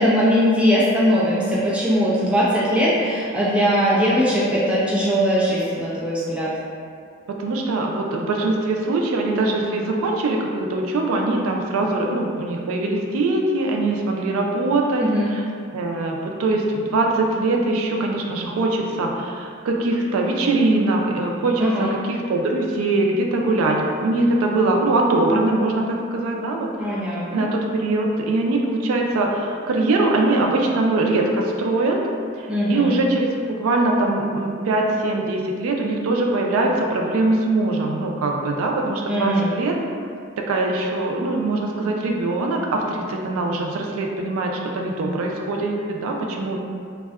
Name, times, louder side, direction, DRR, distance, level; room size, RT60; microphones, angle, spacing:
voice 1, 0.0-6.5 15.0-15.3 21.6-21.9 26.8-27.5 32.5-32.9 39.1-39.5, equal, 5° right, -9 dB, 0.4 m, -20 dB
voice 2, 7.4-15.0 15.3-15.4 15.7-26.9 27.3-32.0 32.4-39.8 40.4-46.6, right 2 dB, 80° right, 1 dB, 0.3 m, -22 dB
2.6 x 2.1 x 2.3 m, 2.2 s
head